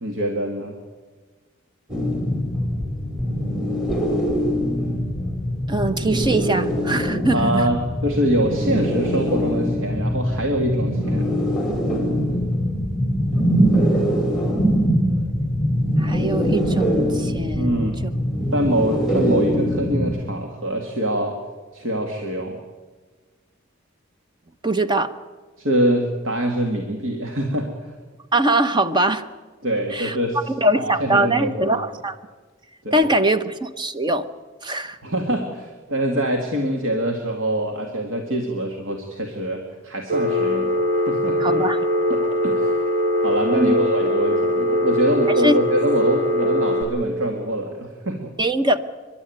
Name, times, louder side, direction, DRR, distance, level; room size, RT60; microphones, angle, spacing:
voice 1, 0.0-0.8 7.3-11.3 17.6-18.2 18.5-21.4 21.7-22.6 25.6-27.7 29.6-30.4 30.7-31.8 32.8-33.1 35.0-40.7 41.1-41.6 42.1-42.7 43.2-48.3, right 1 dB, 80° right, 2 dB, 2.2 m, -24 dB
sound 1, 1.9-20.1, equal, 5° right, 4.6 m, -22 dB
voice 2, 5.7-7.7 16.0-17.9 24.6-25.1 28.3-29.2 29.9-30.2 30.5-32.2 32.9-34.3 34.6-35.0 41.4-41.8 43.5-43.9 45.4-45.5 48.4-48.8, right 1 dB, 25° right, 10 dB, 1.0 m, -22 dB
Telephone, 40.1-46.8, left 1 dB, 40° right, 4.9 m, -21 dB
29.5 x 11.5 x 9.3 m, 1.4 s
head